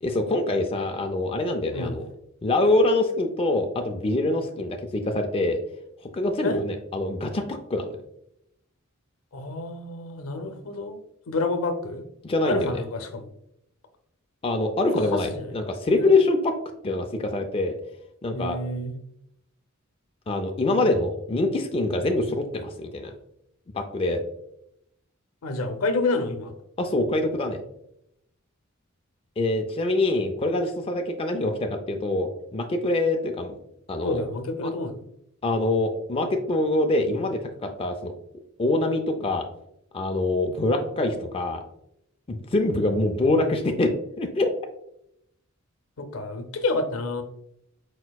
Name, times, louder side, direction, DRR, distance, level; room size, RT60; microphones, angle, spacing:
voice 1, 0.0-2.1 2.4-5.6 6.1-7.9 12.2-12.8 14.4-16.5 16.8-17.8 18.2-18.6 20.3-23.1 23.7-24.2 26.8-27.6 29.4-33.6 33.9-34.2 34.6-34.7 35.4-38.1 38.6-39.5 39.9-41.6 42.3-44.5, left 2 dB, 25° left, 4 dB, 0.4 m, -25 dB
voice 2, 9.3-11.0 11.3-12.0 12.5-13.3 15.1-15.4 16.0-16.1 18.3-19.0 25.4-26.5 34.0-35.0 46.0-47.2, left 2 dB, 80° left, 7 dB, 0.6 m, -28 dB
4.5 x 4.3 x 2.3 m, 0.78 s
head